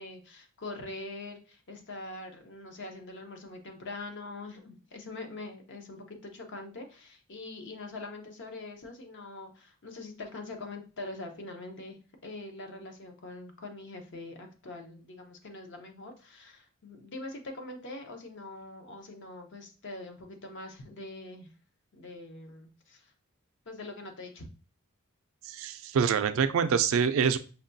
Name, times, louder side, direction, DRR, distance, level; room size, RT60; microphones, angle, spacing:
voice 1, 0.0-21.5 21.9-23.1 23.7-24.5, left 2 dB, 55° left, 4 dB, 0.7 m, -43 dB
voice 2, 25.4-27.4, right 6 dB, 65° right, 11 dB, 0.3 m, -25 dB
5.7 x 2.2 x 2.6 m, 0.35 s
head